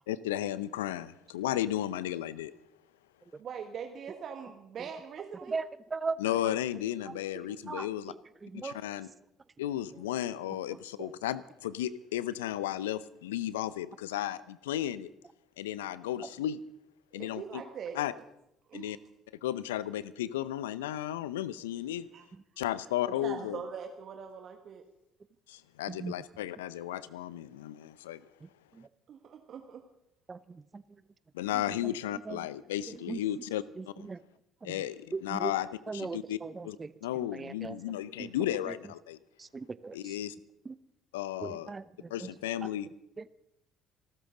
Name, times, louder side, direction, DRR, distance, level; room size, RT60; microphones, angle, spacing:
voice 1, 0.1-2.5 6.2-8.1 8.5-9.1 9.6-15.1 15.6-16.6 17.1-17.6 17.9-18.1 18.7-19.0 19.4-22.1 22.6-23.7 25.5-28.2 31.3-34.1 34.6-36.4 36.6-39.2 39.9-40.3 41.1-41.7 42.1-42.9, left 12 dB, 75° left, 18 dB, 0.6 m, -34 dB
voice 2, 3.4-5.6 17.1-18.2 18.7-19.0 22.1-22.2 23.0-24.8 29.1-29.8, right 7 dB, 50° right, 4 dB, 1.6 m, -42 dB
voice 3, 5.5-6.2 7.1-7.2 7.6-8.8 11.0-11.1 16.2-16.3 25.9-26.1 28.4-28.9 30.3-30.8 31.5-31.9 32.3-32.4 32.9-33.2 33.8-34.2 34.6-34.8 35.1-35.5 35.9-36.9 37.2-37.8 38.2-38.3 38.7-38.8 39.4-40.1 40.6-40.7 41.4-42.3 42.6-43.3, right 4 dB, 25° right, 17 dB, 0.8 m, -39 dB
28.5 x 13.0 x 3.9 m, 0.82 s
figure-of-eight pair, 55°, 0 cm